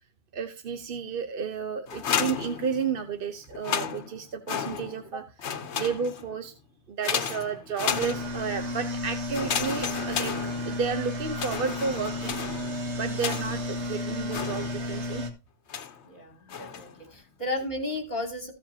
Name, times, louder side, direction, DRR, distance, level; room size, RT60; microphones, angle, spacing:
voice 1, 0.3-5.2 5.7-6.5 6.9-10.3 10.6-12.4 12.9-15.2, right 6 dB, 55° right, 8 dB, 1.0 m, -32 dB
sound 1, 1.9-3.1 3.5-5.1 5.4-6.4 7.0-8.6 9.3-11.0 11.3-13.7 14.3-15.0 15.7-16.1 16.5-17.0, left 7 dB, 85° left, 1.1 m, -33 dB
sound 2, 7.9-15.3, left 1 dB, 90° right, 1.9 m, -33 dB
voice 2, 16.1-18.5, left 2 dB, 40° left, 3 dB, 3.1 m, -34 dB
15.5 x 7.3 x 2.8 m, 0.31 s
omnidirectional pair, 1.1 m